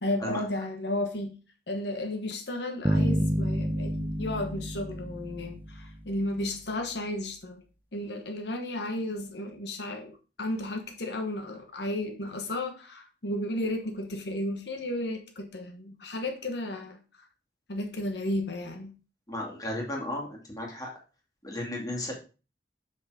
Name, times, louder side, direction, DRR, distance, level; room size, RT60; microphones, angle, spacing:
voice 1, 0.0-1.3 1.7-7.6 7.9-17.0 17.7-18.9, left 1 dB, 70° left, 5 dB, 1.2 m, -33 dB
sound 1, 2.8-6.2, equal, 10° right, 0.5 m, -29 dB
voice 2, 19.3-20.9 21.4-22.1, left 1 dB, 20° left, -1 dB, 2.5 m, -34 dB
7.4 x 6.2 x 4.9 m, 0.33 s
head